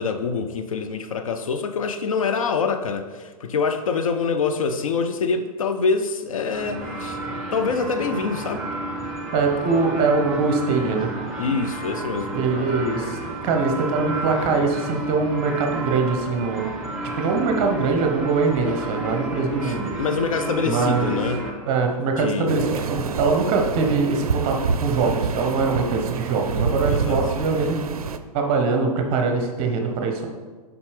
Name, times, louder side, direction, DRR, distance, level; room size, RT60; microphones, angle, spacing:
voice 1, 0.0-7.2 7.5-8.7 11.4-12.4 19.6-21.5 22.2-22.6 26.9-27.2, left 5 dB, 60° left, 7 dB, 0.5 m, -25 dB
sound 1, 6.5-21.5, right 2 dB, 5° right, 1.0 m, -31 dB
voice 2, 9.3-11.1 12.3-13.2 13.4-16.7 17.2-19.9 20.6-21.2 21.7-27.8 28.3-30.3, right 4 dB, 30° right, 3 dB, 0.8 m, -22 dB
sound 2, 22.5-28.2, right 5 dB, 65° right, 0.4 m, -27 dB
7.1 x 5.0 x 3.3 m, 1.4 s
figure-of-eight pair, 110°, 20 cm